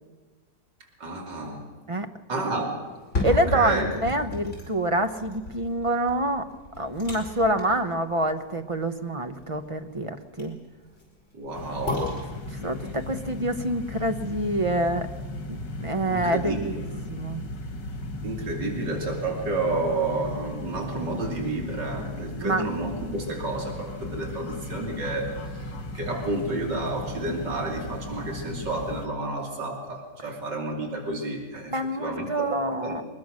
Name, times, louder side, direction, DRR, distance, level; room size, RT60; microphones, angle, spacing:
voice 1, 1.0-1.7 2.3-2.8 3.3-3.9 11.3-12.1 16.1-16.6 18.2-25.7 25.9-33.0, right 2 dB, 85° right, 1 dB, 3.6 m, -30 dB
sound 1, 2.8-14.9 15.3-15.4, left 3 dB, 40° left, 5.2 m, -36 dB
voice 2, 3.2-6.5 6.8-10.6 12.5-15.1 15.5-16.7 17.1-17.4 22.4-22.6 31.7-33.0, right 1 dB, 25° right, 8 dB, 0.8 m, -26 dB
sound 2, 11.5-29.1, left 1 dB, 80° left, 2.6 m, -36 dB
23.0 x 20.5 x 6.5 m, 1.3 s
omnidirectional pair, 1.8 m